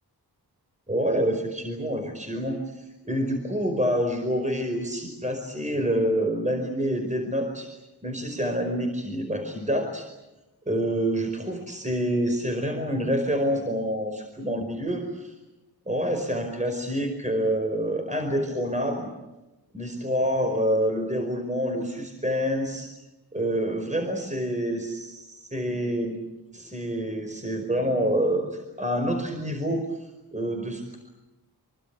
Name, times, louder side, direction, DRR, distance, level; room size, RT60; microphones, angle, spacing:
voice 1, 0.9-7.7 8.0-10.1 10.7-15.0 15.9-19.1 19.7-22.9 23.3-26.2 26.5-29.8 30.3-31.0, equal, 20° right, 3 dB, 5.1 m, -27 dB
26.0 x 24.5 x 8.3 m, 1.0 s
wide cardioid pair, 65°, 40 cm